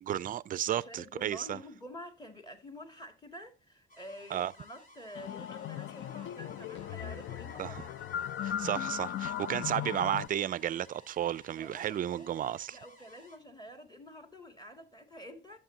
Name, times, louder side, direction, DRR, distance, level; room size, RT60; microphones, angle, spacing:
voice 1, 0.0-1.6 4.3-4.5 7.6-7.9 8.4-12.8, right 11 dB, 45° right, 0.4 m, -33 dB
voice 2, 0.7-8.0 11.6-12.4 12.7-15.6, equal, 20° left, 2.1 m, -48 dB
sound 1, 3.9-13.4, equal, 45° left, 2.7 m, -58 dB
sound 2, 5.1-10.3, left 10 dB, 70° left, 0.5 m, -37 dB
11.5 x 7.4 x 2.7 m
cardioid pair, 90°, 20 cm